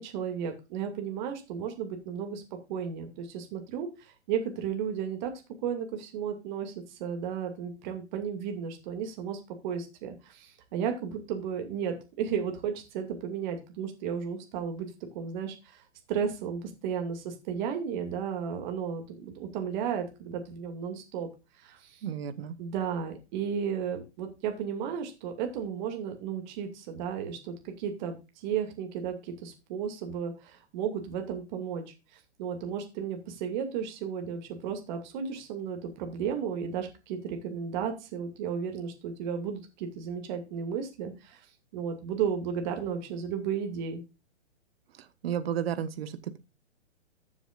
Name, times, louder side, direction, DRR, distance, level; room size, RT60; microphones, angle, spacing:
voice 1, 0.0-5.3 5.6-21.3 21.6-22.0 22.6-31.8 32.1-41.5 41.7-44.0, right 7 dB, 40° right, 5 dB, 2.4 m, -34 dB
voice 2, 22.0-22.6 45.2-46.4, right 9 dB, 55° right, 13 dB, 1.4 m, -32 dB
14.5 x 7.1 x 2.5 m, 0.27 s
hypercardioid pair, 135°, 35 cm